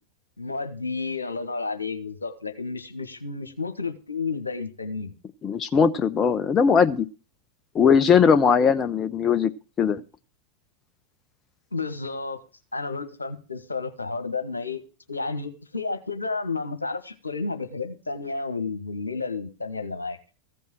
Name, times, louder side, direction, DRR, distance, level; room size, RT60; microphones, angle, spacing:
voice 1, 0.4-5.1 11.7-12.4 12.7-14.8 15.1-20.2, left 4 dB, 80° left, 9 dB, 1.4 m, -31 dB
voice 2, 5.4-7.1 7.7-9.5 9.8-10.0, left 6 dB, 25° left, 12 dB, 0.6 m, -19 dB
15.0 x 5.4 x 7.6 m, 0.35 s
figure-of-eight pair, 90°, 0 cm